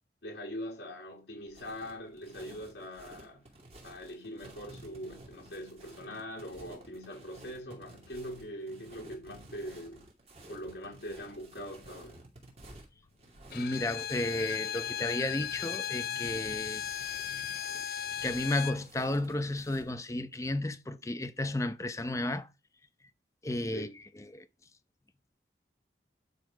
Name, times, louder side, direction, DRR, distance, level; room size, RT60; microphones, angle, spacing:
voice 1, 0.2-3.4 3.8-10.1 10.5-12.2 23.7-24.0, equal, 80° left, 2.2 m, -42 dB
sound 1, 1.5-19.9, right 1 dB, 35° right, 2.6 m, -53 dB
Bowed string instrument, 13.5-18.8, left 9 dB, 55° left, 0.5 m, -36 dB
voice 2, 13.5-16.8 18.2-22.5 23.4-23.9 24.1-24.5, left 1 dB, 15° left, 0.7 m, -33 dB
11.5 x 4.2 x 5.0 m
head